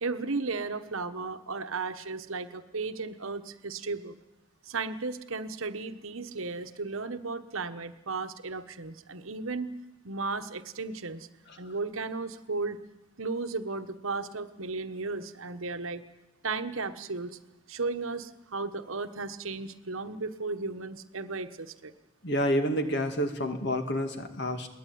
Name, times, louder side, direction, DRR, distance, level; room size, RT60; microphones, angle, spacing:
voice 1, 0.0-4.1 4.6-9.7 10.0-11.3 11.6-12.8 13.2-16.0 16.4-17.4 17.7-21.9, right 3 dB, 75° right, 9 dB, 1.2 m, -35 dB
voice 2, 22.2-24.7, equal, 55° left, 6 dB, 2.3 m, -28 dB
22.0 x 18.5 x 9.3 m, 1.0 s
head